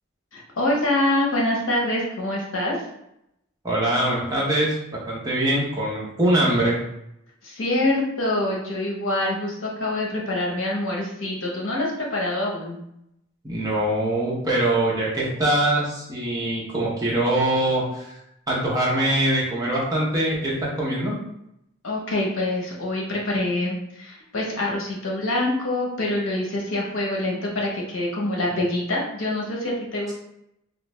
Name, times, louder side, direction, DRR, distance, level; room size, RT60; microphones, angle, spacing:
voice 1, 0.3-2.7 7.4-12.8 21.8-30.1, left 1 dB, 70° left, -2 dB, 0.9 m, -25 dB
voice 2, 3.6-6.8 13.4-18.1 18.5-21.2, right 1 dB, 20° right, -5 dB, 0.8 m, -23 dB
3.3 x 2.4 x 3.1 m, 0.79 s
head